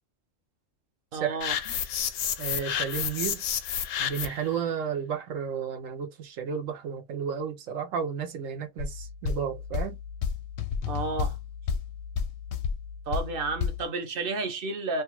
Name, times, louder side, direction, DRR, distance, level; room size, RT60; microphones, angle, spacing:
voice 1, 1.1-1.6 10.9-11.4 13.1-15.0, right 3 dB, 55° right, 0.8 m, -31 dB
sound 1, 1.4-4.5, left 9 dB, 90° left, 1.0 m, -30 dB
voice 2, 2.4-3.4 4.0-10.0, right 7 dB, 85° right, 1.1 m, -32 dB
sound 2, 8.8-13.8, left 6 dB, 60° left, 0.6 m, -32 dB
2.7 x 2.3 x 3.0 m
omnidirectional pair, 1.3 m